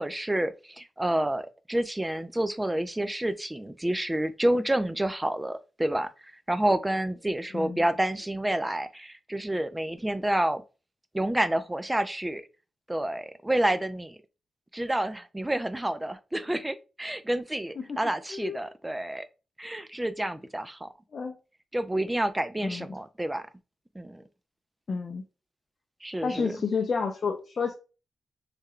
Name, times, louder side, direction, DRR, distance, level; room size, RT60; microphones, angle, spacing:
voice 1, 0.0-6.1 6.5-10.6 11.1-12.4 12.9-14.2 14.7-19.3 19.6-20.9 21.7-23.4 24.0-24.2 26.0-26.6, right 1 dB, 10° right, 0.3 m, -29 dB
voice 2, 24.9-25.2 26.2-27.7, left 5 dB, 50° left, 0.4 m, -30 dB
3.2 x 2.2 x 3.5 m
wide cardioid pair, 120°, 0 cm